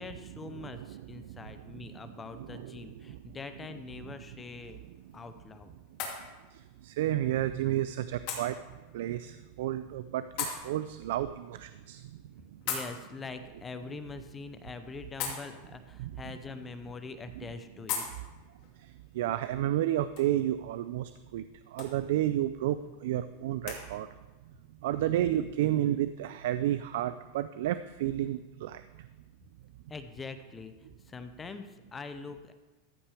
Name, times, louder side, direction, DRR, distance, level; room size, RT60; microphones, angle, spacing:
voice 1, 0.0-4.8 5.1-5.7 12.7-18.0 29.9-30.7 31.0-32.5, left 4 dB, 15° left, 9 dB, 0.5 m, -43 dB
voice 2, 0.6-1.4 1.9-2.0 2.5-2.7 3.1-3.2 6.5-8.6 8.9-12.2 12.5-12.6 16.0-16.1 18.8-21.4 21.7-24.1 24.8-29.1, right 13 dB, 70° right, 12 dB, 0.3 m, -31 dB
sound 1, 4.3-23.8, left 6 dB, 50° left, 2.4 m, -44 dB
14.0 x 6.0 x 4.8 m, 1.2 s
supercardioid pair, 155°, 0 cm